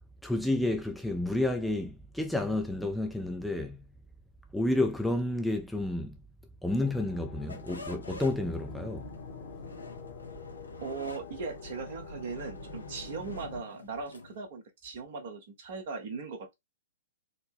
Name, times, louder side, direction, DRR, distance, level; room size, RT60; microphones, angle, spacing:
voice 1, 0.2-3.8 4.5-6.2 6.6-9.2, left 1 dB, ahead, 0.5 m, -30 dB
sound 1, 6.7-13.6, left 3 dB, 55° left, 1.1 m, -45 dB
sound 2, 7.5-14.4, left 2 dB, 85° left, 0.8 m, -48 dB
voice 2, 10.8-16.5, right 4 dB, 50° right, 1.1 m, -39 dB
4.1 x 2.1 x 3.6 m
figure-of-eight pair, 115°, 0 cm